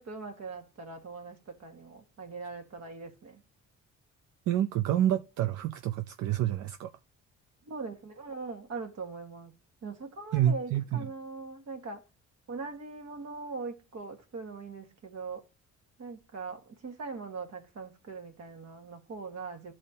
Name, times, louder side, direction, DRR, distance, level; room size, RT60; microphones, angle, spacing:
voice 1, 0.0-3.4 7.7-9.5 9.8-12.0 12.5-15.4 16.0-19.7, right 4 dB, 60° right, 1.7 m, -41 dB
voice 2, 4.5-6.9 10.3-11.0, right 11 dB, 75° right, 0.6 m, -28 dB
12.0 x 4.3 x 2.8 m
cardioid pair, 90°, 30 cm